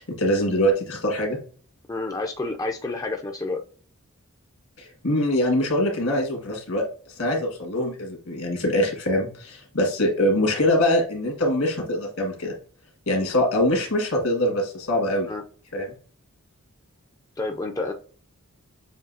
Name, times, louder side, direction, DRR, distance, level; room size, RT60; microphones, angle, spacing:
voice 1, 0.0-1.4 4.8-6.8 7.2-12.5 13.1-15.3 15.7-15.9, left 1 dB, 70° left, 1 dB, 1.8 m, -23 dB
voice 2, 1.9-3.6 15.3-15.4 17.4-17.9, left 2 dB, 15° left, 3 dB, 0.4 m, -29 dB
7.3 x 2.7 x 2.7 m, 0.43 s
head